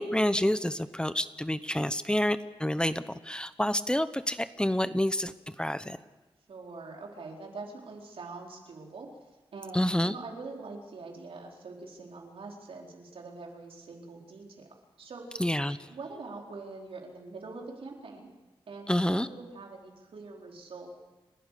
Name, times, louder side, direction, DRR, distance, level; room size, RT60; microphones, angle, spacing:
voice 1, 0.0-6.0 9.7-10.1 15.4-15.8 18.9-19.3, left 1 dB, 10° left, 12 dB, 0.9 m, -28 dB
voice 2, 6.5-14.7 15.0-15.4 15.9-18.3 18.7-20.9, right 3 dB, 80° right, 0 dB, 4.4 m, -44 dB
30.0 x 12.0 x 8.4 m, 1.2 s
cardioid pair, 65°, 9 cm